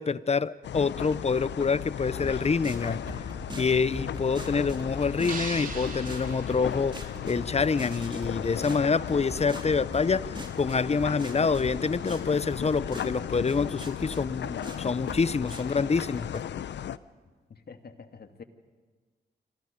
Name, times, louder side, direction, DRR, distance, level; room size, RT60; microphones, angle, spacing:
voice 1, 0.0-3.2 3.5-16.4, left 5 dB, 35° left, 18 dB, 0.8 m, -27 dB
sound 1, 0.6-17.0, left 10 dB, 80° left, 0.6 m, -36 dB
sound 2, 2.1-16.4, right 2 dB, 25° right, 3.6 m, -43 dB
sound 3, 5.3-7.6, right 4 dB, 50° right, 3.2 m, -40 dB
voice 2, 17.5-18.4, left 5 dB, 60° left, 7 dB, 2.1 m, -47 dB
27.5 x 26.5 x 5.3 m, 1.4 s
cardioid pair, 55°, 18 cm